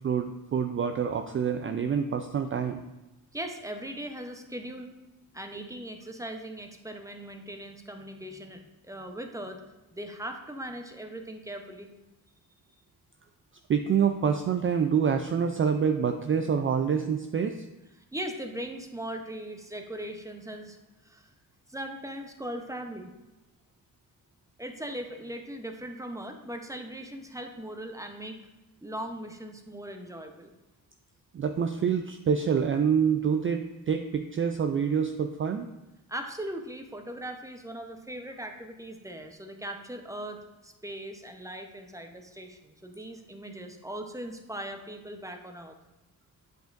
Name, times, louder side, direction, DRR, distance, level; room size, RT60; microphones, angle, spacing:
voice 1, 0.0-2.8 13.7-17.6 31.3-35.7, right 7 dB, 35° right, 6 dB, 0.4 m, -26 dB
voice 2, 3.3-4.9 5.3-9.6 9.9-11.9 18.1-20.8 21.0-21.3 21.7-23.1 24.6-28.4 28.8-30.5 36.1-45.7, right 1 dB, 10° right, 5 dB, 0.7 m, -39 dB
7.7 x 5.2 x 2.5 m, 1.0 s
cardioid pair, 70°, 37 cm